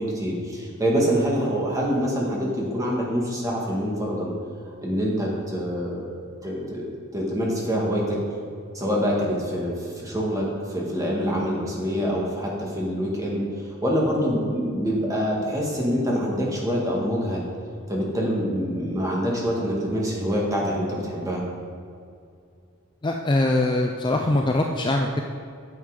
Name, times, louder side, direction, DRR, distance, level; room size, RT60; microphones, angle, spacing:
voice 1, 0.0-4.3 4.8-6.1 6.4-8.2 8.7-17.5 17.9-21.4, equal, 15° right, -3 dB, 1.7 m, -25 dB
voice 2, 23.0-25.2, left 2 dB, 20° left, 2 dB, 0.4 m, -22 dB
9.6 x 7.4 x 4.9 m, 2.3 s
head